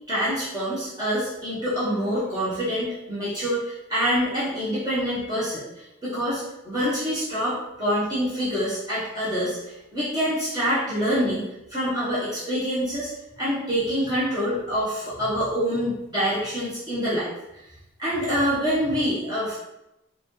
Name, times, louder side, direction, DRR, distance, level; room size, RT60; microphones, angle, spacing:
voice 1, 0.1-13.1 13.4-17.3 18.0-19.5, equal, 20° right, -11 dB, 1.0 m, -26 dB
5.0 x 2.3 x 3.1 m, 0.91 s
head